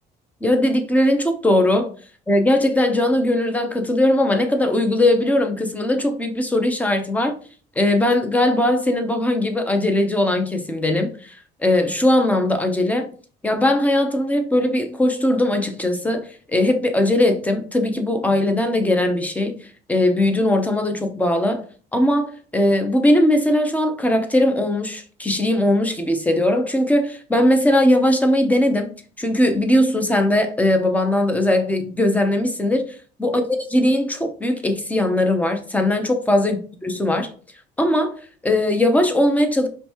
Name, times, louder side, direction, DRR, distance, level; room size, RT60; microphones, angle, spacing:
voice 1, 0.4-1.9 2.3-7.4 7.8-13.1 13.4-21.6 21.9-28.9 29.2-33.4 33.7-36.6 36.8-37.3 37.8-38.1 38.4-39.7, left 1 dB, 10° left, 0.8 m, -19 dB
5.1 x 3.2 x 2.9 m
cardioid pair, 110°, 17 cm